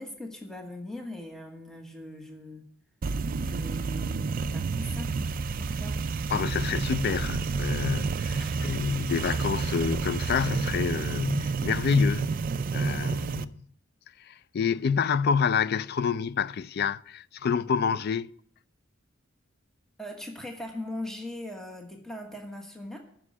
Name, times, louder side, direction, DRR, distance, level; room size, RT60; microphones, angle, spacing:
voice 1, 0.0-2.6 3.4-5.1 5.6-6.0 8.4-8.7 20.0-23.0, left 1 dB, 5° left, 1.3 m, -40 dB
sound 1, 3.0-13.4, right 4 dB, 45° right, 0.4 m, -30 dB
voice 2, 6.3-12.4 12.7-13.6 14.3-18.3, left 6 dB, 55° left, 0.4 m, -28 dB
9.6 x 6.2 x 8.7 m
head